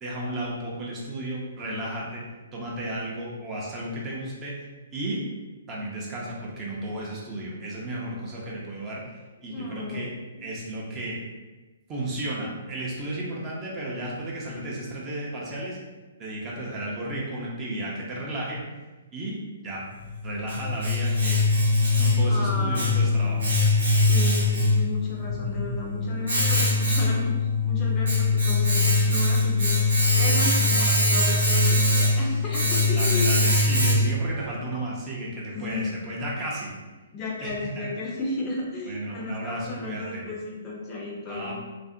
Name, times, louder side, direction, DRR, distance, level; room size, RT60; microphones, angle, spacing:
voice 1, 0.0-2.2 2.5-4.6 4.9-5.2 5.7-10.1 10.4-11.2 11.9-15.8 16.2-18.6 19.1-19.9 20.2-21.4 22.0-23.5 30.3-31.4 32.9-36.7 37.4-37.9 38.9-40.2 41.3-41.5, right 1 dB, 25° right, -4 dB, 0.6 m, -33 dB
voice 2, 9.5-10.1 22.3-23.0 24.0-30.6 31.0-34.1 35.5-35.9 37.1-41.5, left 2 dB, 25° left, -3 dB, 0.5 m, -34 dB
Domestic sounds home sounds, 20.0-34.3, left 2 dB, 75° right, 0.9 m, -22 dB
2.5 x 2.0 x 2.5 m, 1.2 s
figure-of-eight pair, 130°, 0 cm